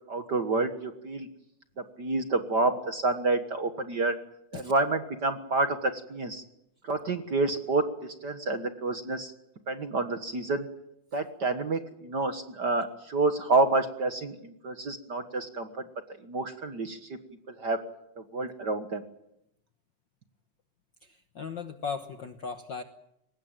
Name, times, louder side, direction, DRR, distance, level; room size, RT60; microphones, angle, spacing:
voice 1, 0.1-1.3 1.8-4.2 4.5-6.4 6.8-9.3 9.7-10.7 11.1-15.9 16.2-17.2 17.5-17.8 18.3-19.0, right 3 dB, 45° right, 8 dB, 1.6 m, -29 dB
voice 2, 21.0-22.8, left 5 dB, 55° left, 8 dB, 1.3 m, -37 dB
23.0 x 20.0 x 9.0 m, 0.81 s
omnidirectional pair, 3.4 m